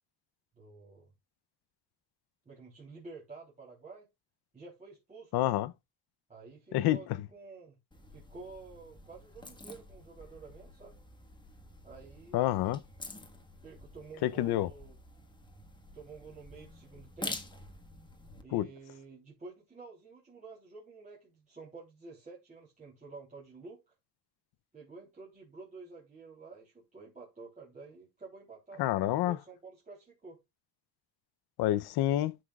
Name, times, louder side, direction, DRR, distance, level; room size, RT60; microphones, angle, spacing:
voice 1, 0.6-1.1 2.4-4.1 4.5-5.6 6.3-7.7 8.1-11.0 11.8-12.5 13.6-14.9 15.9-17.4 18.4-23.9 24.7-30.4, right 4 dB, 20° right, 3.3 m, -50 dB
voice 2, 5.3-5.7 6.7-7.0 12.3-12.8 14.2-14.7 18.5-18.7 28.8-29.4 31.6-32.4, left 14 dB, 70° left, 0.7 m, -28 dB
sound 1, 7.9-18.4, left 2 dB, 10° left, 1.5 m, -48 dB
13.0 x 6.1 x 2.4 m
cardioid pair, 135°, 40 cm